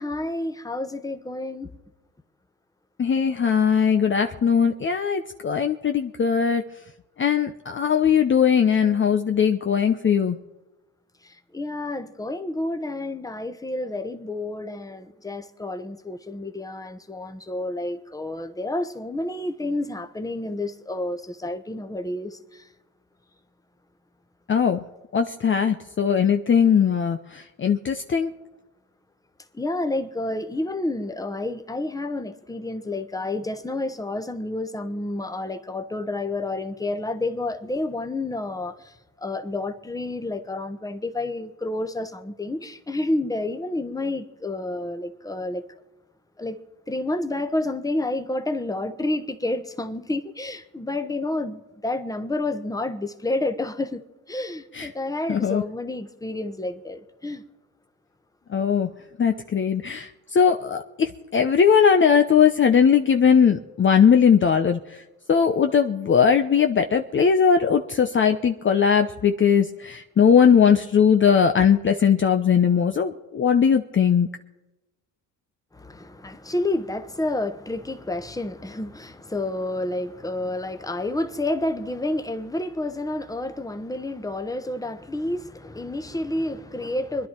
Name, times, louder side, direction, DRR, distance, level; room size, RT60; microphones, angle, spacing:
voice 1, 0.0-1.7 11.5-22.6 29.5-38.7 39.2-45.6 46.4-46.6 46.9-54.0 54.3-57.4 75.7-87.3, left 2 dB, 10° left, 1.2 m, -29 dB
voice 2, 3.0-6.6 7.2-10.4 24.5-24.8 25.1-28.3 54.7-54.9 55.3-55.6 58.5-58.9 59.2-64.8 65.3-74.3, left 7 dB, 35° left, 0.8 m, -19 dB
24.5 x 10.5 x 4.5 m
supercardioid pair, 75°, 36 cm